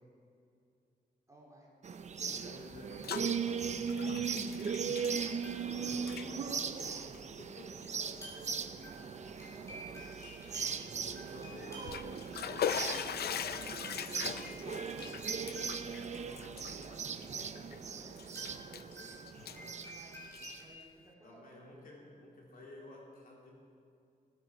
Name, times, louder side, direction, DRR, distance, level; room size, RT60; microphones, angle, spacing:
voice 1, 1.3-1.7 6.2-10.7 11.6-11.9 14.4-18.4 18.7-20.2 20.6-22.3, right 1 dB, 20° right, -4 dB, 3.3 m, -59 dB
sound 1, 1.8-20.6, right 6 dB, 45° right, 0.5 m, -39 dB
voice 2, 2.3-4.3 4.7-5.0 5.6-7.0 7.4-7.8 11.3-12.0 12.3-13.4 13.7-14.6 21.2-23.5, left 2 dB, 65° left, -3 dB, 3.3 m, -52 dB
Bathtub (filling or washing), 2.7-3.3 3.6-5.7 6.0-6.3 7.0-7.2 7.8-7.9 8.4-8.5 11.6-17.8 18.2-18.9 19.3-20.6, left 8 dB, 80° left, 0.5 m, -40 dB
sound 2, 4.9-5.8 6.0-6.8 8.0-8.6 8.8-16.8 18.2-20.6, equal, 20° left, 4.2 m, -52 dB
17.0 x 9.2 x 6.3 m, 2.4 s
wide cardioid pair, 150°, 16 cm